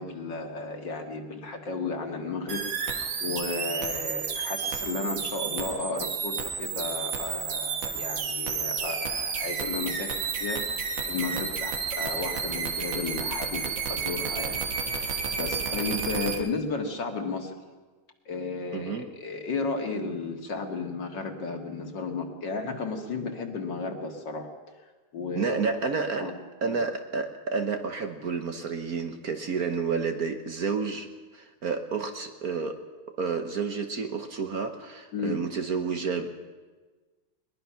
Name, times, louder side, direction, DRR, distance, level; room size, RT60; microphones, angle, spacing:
voice 1, 0.0-17.6 18.3-24.5 25.1-25.8 26.2-26.3 26.6-26.8 35.1-35.4, left 3 dB, 60° left, 4 dB, 2.5 m, -34 dB
sound 1, 2.5-16.4, right 6 dB, 70° right, 2.3 m, -31 dB
voice 2, 18.7-19.1 25.3-26.3 26.6-32.8 33.2-36.3, right 5 dB, 50° right, 6 dB, 1.4 m, -30 dB
21.0 x 21.0 x 5.8 m, 1.3 s
omnidirectional pair, 2.2 m